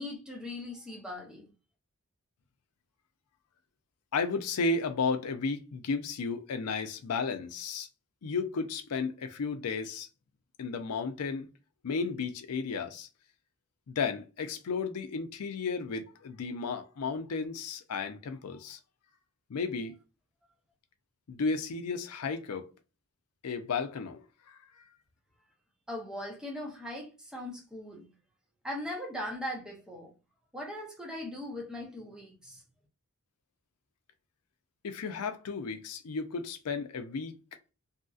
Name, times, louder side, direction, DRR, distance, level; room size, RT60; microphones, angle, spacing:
voice 1, 0.0-1.5 25.9-28.1 28.6-30.1 30.5-32.6, left 1 dB, 5° right, 0.7 m, -39 dB
voice 2, 4.1-7.9 8.2-10.1 10.6-11.5 11.8-13.1 13.9-18.8 19.5-20.0 21.3-22.7 23.4-24.2 24.5-24.6 34.8-37.3, left 4 dB, 90° left, 0.5 m, -33 dB
2.8 x 2.7 x 2.3 m
head